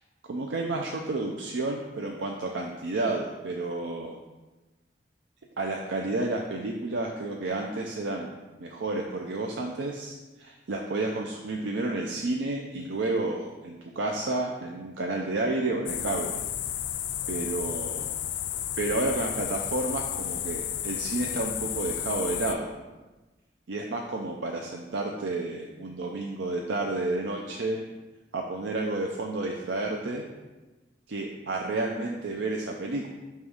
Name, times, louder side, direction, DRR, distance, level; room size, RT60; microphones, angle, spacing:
voice 1, 0.3-4.2 5.6-16.4 17.3-18.2 18.8-22.7 23.7-27.8 28.3-30.2 31.1-33.1, right 2 dB, 80° right, 1 dB, 0.5 m, -31 dB
sound 1, 15.9-22.5, left 11 dB, 85° left, 0.4 m, -32 dB
5.6 x 3.5 x 4.9 m, 1.1 s
head